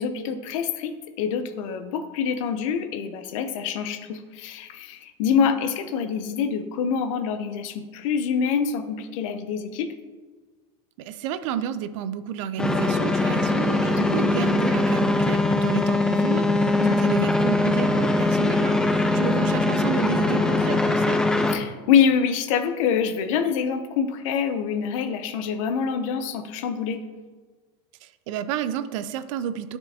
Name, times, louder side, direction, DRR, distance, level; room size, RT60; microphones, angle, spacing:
voice 1, 0.0-9.9 13.8-14.3 16.8-17.0 21.5-27.0, left 7 dB, 80° left, 10 dB, 0.6 m, -26 dB
voice 2, 11.0-21.2 28.0-29.8, right 9 dB, 70° right, 13 dB, 0.4 m, -31 dB
sound 1, 12.6-21.5, left 2 dB, 5° left, 0.3 m, -21 dB
10.0 x 4.4 x 2.7 m, 1.4 s
cardioid pair, 170°, 17 cm